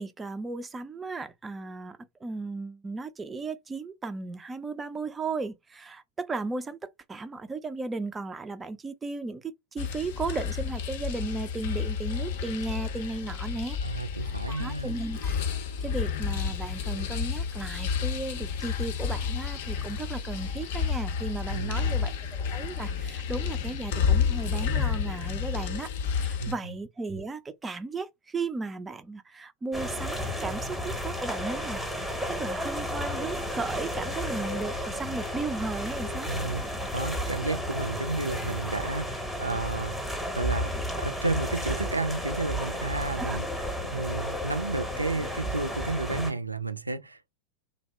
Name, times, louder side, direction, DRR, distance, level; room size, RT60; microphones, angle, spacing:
voice 1, 0.0-6.8 7.1-13.8 14.5-15.4 15.8-31.8 32.3-36.3 43.2-43.4, right 3 dB, 15° right, 0.3 m, -35 dB
sound 1, 9.8-26.5, left 6 dB, 55° left, 0.5 m, -30 dB
voice 2, 13.8-14.9 21.5-22.1 26.4-26.8 36.2-43.7 43.9-47.3, right 3 dB, 80° right, 0.4 m, -32 dB
sound 2, 29.7-46.3, equal, ahead, 0.7 m, -33 dB
2.6 x 2.1 x 3.1 m
figure-of-eight pair, 90°, 0 cm